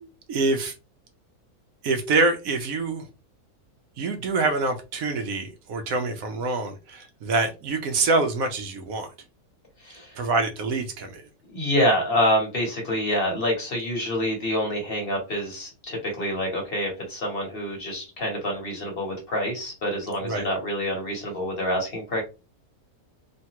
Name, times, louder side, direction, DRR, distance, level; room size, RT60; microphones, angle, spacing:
voice 1, 0.0-0.7 1.8-3.1 4.0-9.1 10.2-11.2 20.2-20.4, right 3 dB, 70° right, 6 dB, 1.0 m, -25 dB
voice 2, 9.8-10.2 11.5-22.2, equal, 40° left, 0 dB, 1.1 m, -27 dB
3.3 x 2.2 x 2.8 m, 0.29 s
omnidirectional pair, 1.6 m